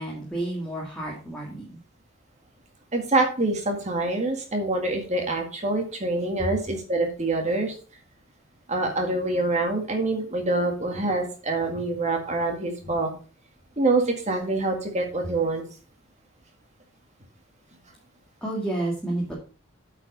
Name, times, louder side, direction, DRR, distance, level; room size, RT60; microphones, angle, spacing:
voice 1, 0.0-1.8 18.4-19.3, right 2 dB, 5° left, -4 dB, 1.9 m, -30 dB
voice 2, 2.9-7.8 8.7-13.1 13.8-15.6, right 2 dB, 35° right, 3 dB, 1.9 m, -25 dB
8.6 x 5.0 x 5.3 m, 0.38 s
head